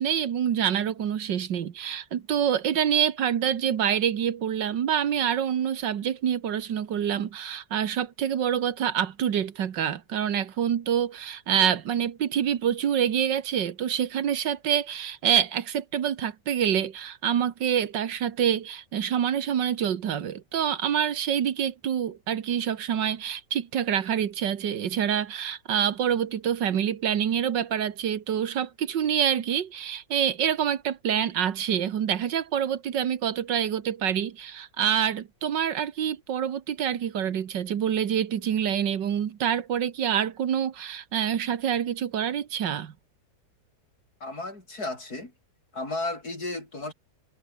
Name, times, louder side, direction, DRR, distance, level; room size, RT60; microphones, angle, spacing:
voice 1, 0.0-42.9, right 9 dB, 85° right, 2.0 m, -26 dB
voice 2, 44.2-45.3 45.7-46.9, left 2 dB, 60° left, 6.7 m, -33 dB
omnidirectional pair, 1.9 m